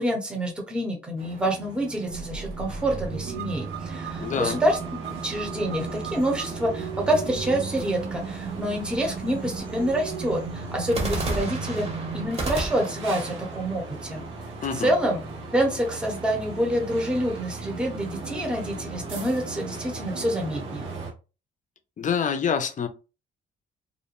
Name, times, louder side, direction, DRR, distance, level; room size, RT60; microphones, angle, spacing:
voice 1, 0.0-11.9 12.1-14.2 14.7-15.2 15.5-20.9, equal, 5° right, 0.8 m, -27 dB
sound 1, 1.2-21.1, right 3 dB, 85° right, 0.9 m, -38 dB
sound 2, 2.1-12.3, right 7 dB, 60° right, 0.5 m, -36 dB
sound 3, 2.7-4.1 10.9-14.8, right 2 dB, 30° right, 0.9 m, -34 dB
voice 2, 4.2-4.6 14.6-14.9 22.0-22.9, left 7 dB, 40° left, 0.5 m, -26 dB
2.5 x 2.1 x 2.9 m
cardioid pair, 90°, 20 cm